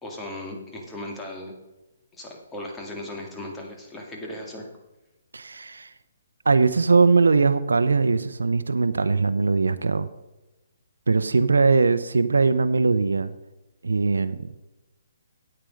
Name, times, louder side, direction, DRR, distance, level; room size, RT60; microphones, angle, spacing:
voice 1, 0.0-1.5 2.2-4.7, left 1 dB, 10° left, 0 dB, 2.2 m, -37 dB
voice 2, 5.3-5.9 6.5-10.1 11.1-13.3 13.8-14.5, right 4 dB, 85° right, 11 dB, 0.6 m, -20 dB
9.1 x 8.8 x 5.2 m, 1.0 s
hypercardioid pair, 145°, 0 cm